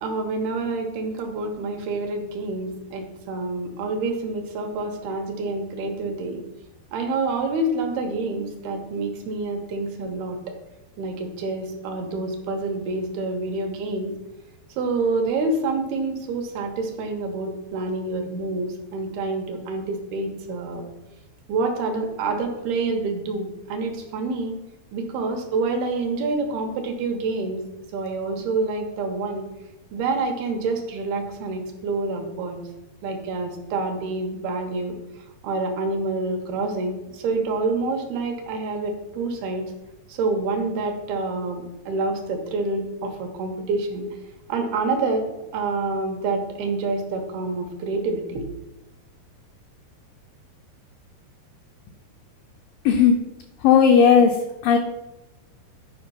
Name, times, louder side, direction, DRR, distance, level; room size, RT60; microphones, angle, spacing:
voice 1, 0.0-6.4 6.9-10.5 11.0-14.1 14.7-20.8 21.5-24.5 24.9-27.6 27.9-29.5 29.9-32.6 33.0-35.0 35.4-39.7 40.1-44.1 44.5-45.3 45.5-48.5, right 3 dB, 75° right, 3 dB, 3.0 m, -27 dB
voice 2, 53.6-54.4 54.6-54.8, left 7 dB, 80° left, 3 dB, 2.0 m, -15 dB
11.0 x 5.1 x 5.7 m, 0.96 s
omnidirectional pair, 4.9 m